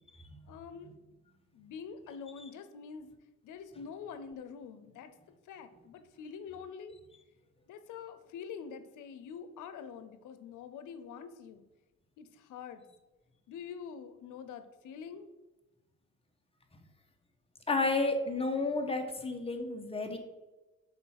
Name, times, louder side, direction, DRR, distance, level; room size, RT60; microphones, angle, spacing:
voice 1, 0.5-0.9 1.5-3.2 3.4-5.1 5.5-6.9 7.7-11.6 12.2-12.8 13.5-15.3, left 6 dB, 85° left, 10 dB, 0.8 m, -45 dB
voice 2, 17.7-20.2, left 3 dB, 20° left, 4 dB, 1.4 m, -31 dB
7.3 x 4.3 x 5.9 m, 1.1 s
cardioid pair, 90°, 30 cm